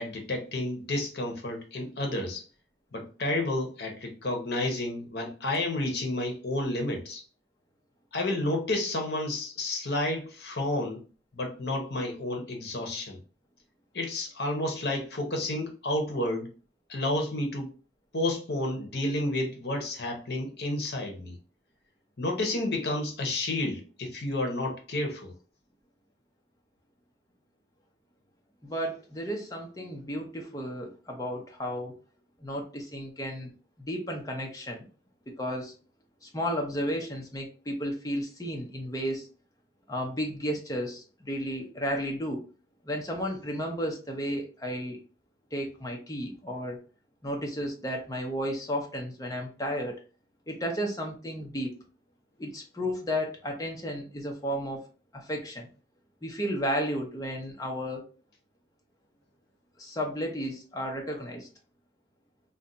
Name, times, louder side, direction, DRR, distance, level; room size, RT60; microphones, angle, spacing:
voice 1, 0.0-2.4 2.9-7.2 8.1-11.0 11.3-13.2 13.9-16.5 16.9-17.7 18.1-21.4 22.2-25.3, left 1 dB, 70° left, 0.8 m, -31 dB
voice 2, 28.6-31.9 32.4-33.5 33.8-34.9 35.3-35.7 36.2-39.3 39.9-42.4 42.8-45.0 45.5-46.8 47.2-50.0 50.5-51.7 52.4-54.8 55.1-55.7 56.2-58.0 59.8-61.5, equal, 20° left, 0.6 m, -33 dB
2.5 x 2.2 x 3.8 m
head